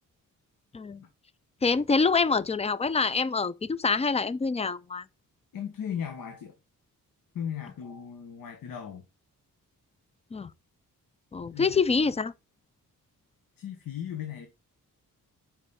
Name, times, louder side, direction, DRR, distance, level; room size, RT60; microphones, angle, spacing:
voice 1, 1.6-5.0 10.3-10.5 11.3-12.3, left 4 dB, 20° left, 0.4 m, -26 dB
voice 2, 5.5-6.5 7.3-9.0 11.5-12.0 13.6-14.5, left 8 dB, 80° left, 1.2 m, -37 dB
5.4 x 5.4 x 4.2 m
cardioid pair, 100°, 33 cm